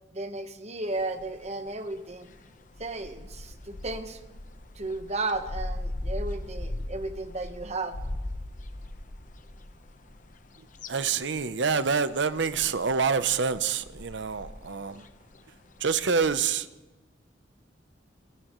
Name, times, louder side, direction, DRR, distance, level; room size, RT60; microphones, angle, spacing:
voice 1, 0.1-2.3 2.8-4.2 4.7-7.9, right 2 dB, 35° right, 8 dB, 1.1 m, -34 dB
sound 1, 0.9-16.4, left 1 dB, 45° left, 0.9 m, -40 dB
voice 2, 10.9-15.1 15.8-16.7, right 5 dB, 70° right, 13 dB, 0.7 m, -27 dB
27.0 x 16.5 x 3.1 m, 1.1 s
head